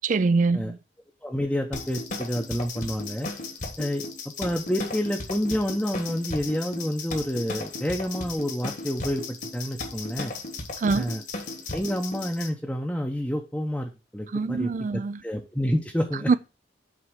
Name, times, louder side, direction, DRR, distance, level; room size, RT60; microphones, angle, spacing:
voice 1, 0.0-0.8 10.8-11.1 14.3-15.2 16.3-16.4, right 4 dB, 45° right, 0.4 m, -24 dB
voice 2, 1.2-3.3 3.8-10.3 10.9-11.2 11.7-14.7 15.2-16.3, equal, 5° left, 0.7 m, -29 dB
sound 1, 1.7-12.5, left 3 dB, 45° left, 1.4 m, -36 dB
6.1 x 4.3 x 6.4 m
head